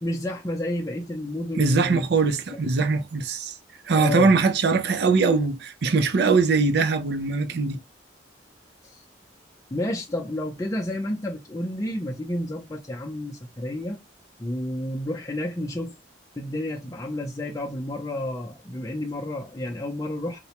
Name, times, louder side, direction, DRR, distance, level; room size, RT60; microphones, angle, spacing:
voice 1, 0.0-2.1 2.5-2.6 3.9-4.3 8.8-9.0 9.7-14.0 14.4-16.0 16.4-20.4, left 1 dB, 20° left, 0.5 m, -30 dB
voice 2, 1.6-3.5 3.9-7.8, right 4 dB, 60° right, 0.5 m, -21 dB
4.0 x 2.2 x 2.9 m
head